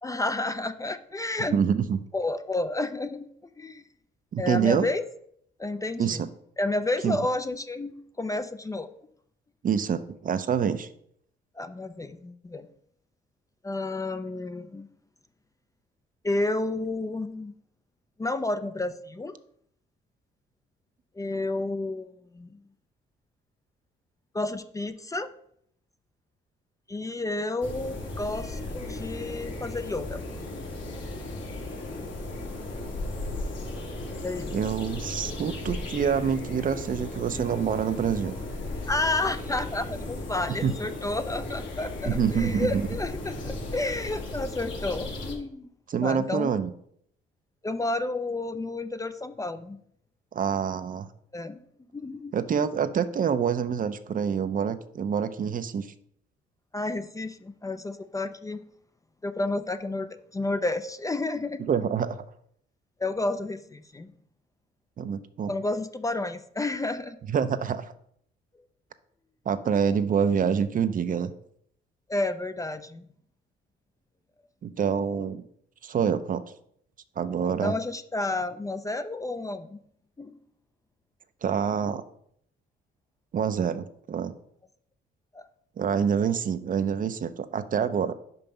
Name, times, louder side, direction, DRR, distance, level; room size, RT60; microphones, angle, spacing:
voice 1, 0.0-1.6 2.1-3.8 4.4-5.0 5.6-6.2 6.6-8.9 11.6-12.7 13.6-14.9 16.2-17.5 18.2-19.3 21.2-22.6 24.3-25.3 26.9-30.3 34.2-34.5 38.9-45.6 46.0-46.5 47.6-49.8 51.3-51.6 51.9-52.4 56.7-58.6 59.2-61.6 63.0-64.1 65.5-67.2 72.1-73.0 77.6-79.8 80.2-80.3 85.3-85.5, left 2 dB, 15° left, 11 dB, 0.4 m, -31 dB
voice 2, 1.5-2.0 4.3-4.9 6.0-6.3 7.0-7.2 9.6-10.9 34.5-38.3 40.6-40.7 42.1-42.9 45.9-46.7 50.3-51.1 52.3-55.9 61.7-62.2 65.0-65.5 67.3-67.9 69.5-71.3 74.6-75.4 75.8-76.4 77.2-77.7 81.4-82.0 83.3-84.4 85.8-88.1, right 7 dB, 45° right, 12 dB, 0.5 m, -26 dB
sound 1, 27.6-45.4, left 2 dB, 75° left, 1.8 m, -35 dB
5.4 x 5.2 x 5.7 m, 0.69 s
cardioid pair, 90°, 20 cm